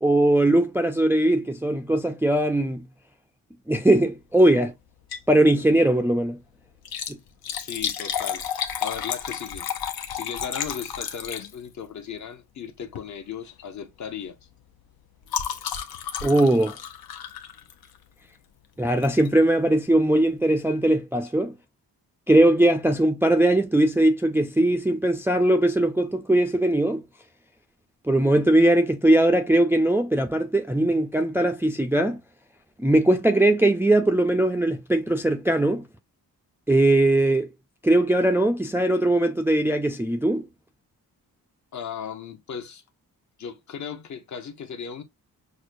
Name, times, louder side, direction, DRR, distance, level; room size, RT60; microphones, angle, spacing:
voice 1, 0.0-2.8 3.7-4.7 5.3-6.4 7.1-7.2 16.2-16.7 18.8-21.5 22.3-27.0 28.1-32.2 32.8-35.8 36.7-37.5 37.8-40.4, right 1 dB, 5° right, 0.4 m, -20 dB
Liquid, 4.9-5.4 5.7-5.8 6.7-11.9 12.8-13.1 13.5-13.7 14.0-18.1 19.0-19.3 19.8-19.9 20.1-20.2, left 8 dB, 75° left, 0.8 m, -32 dB
voice 2, 7.6-9.7 10.1-14.4 41.7-42.8 43.4-45.0, left 7 dB, 50° left, 0.8 m, -36 dB
6.2 x 2.2 x 2.5 m
wide cardioid pair, 140°, 37 cm